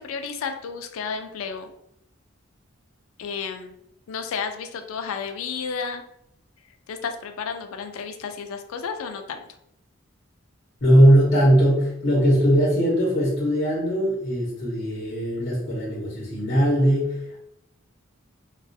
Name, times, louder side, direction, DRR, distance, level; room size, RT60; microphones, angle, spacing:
voice 1, 0.0-1.7 3.2-3.7 4.1-6.0 6.9-9.4, left 6 dB, 80° left, 6 dB, 0.3 m, -32 dB
voice 2, 10.8-17.4, equal, 50° left, -6 dB, 0.8 m, -20 dB
2.3 x 2.3 x 2.6 m, 0.77 s
head